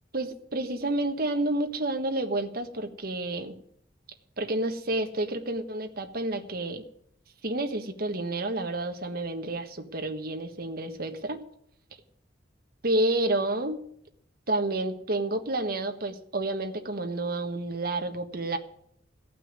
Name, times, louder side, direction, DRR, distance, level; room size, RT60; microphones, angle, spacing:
voice 1, 0.1-3.6 4.4-6.8 7.4-11.4 12.8-13.8 14.5-18.6, right 2 dB, 55° right, 5 dB, 1.4 m, -30 dB
16.0 x 6.0 x 9.5 m, 0.69 s
head